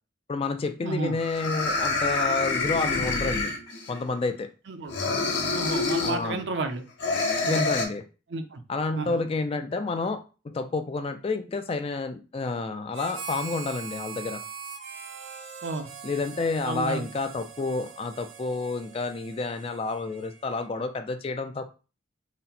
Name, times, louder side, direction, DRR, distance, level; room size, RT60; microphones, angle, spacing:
voice 1, 0.3-3.5 3.9-4.5 6.0-6.5 7.4-8.0 8.7-14.4 16.0-21.7, left 3 dB, 30° left, 8 dB, 0.3 m, -30 dB
sound 1, 0.6-0.7 1.2-4.0 4.9-6.2 7.0-7.8, left 3 dB, 60° left, 0.9 m, -27 dB
voice 2, 0.8-1.1 4.7-4.9 5.5-6.8 7.4-7.7 8.3-8.6 8.9-9.2 15.6-15.9 16.6-17.0, right 3 dB, 60° right, 8 dB, 0.6 m, -31 dB
Marimba xylophone, 1.6-4.3, left 3 dB, 85° left, 1.0 m, -44 dB
Harmonica, 12.9-20.7, right 6 dB, 90° right, 0.9 m, -42 dB
4.1 x 2.1 x 4.0 m, 0.34 s
head